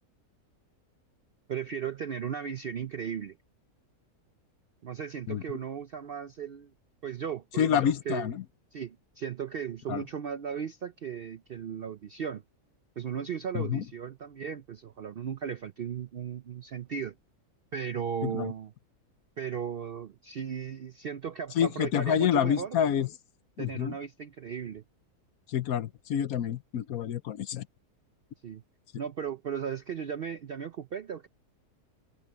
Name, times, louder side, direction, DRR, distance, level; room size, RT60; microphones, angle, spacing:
voice 1, 1.5-3.4 4.8-6.7 7.0-8.3 8.7-12.4 13.0-17.1 17.7-18.7 19.4-22.8 23.6-24.8 28.4-28.6 29.0-31.3, right 7 dB, 65° right, 0.6 m, -36 dB
voice 2, 7.6-8.4 9.9-10.0 13.5-13.8 18.2-18.5 21.6-23.1 23.6-24.0 25.5-27.7, left 9 dB, 70° left, 1.2 m, -28 dB
omnidirectional pair, 1.6 m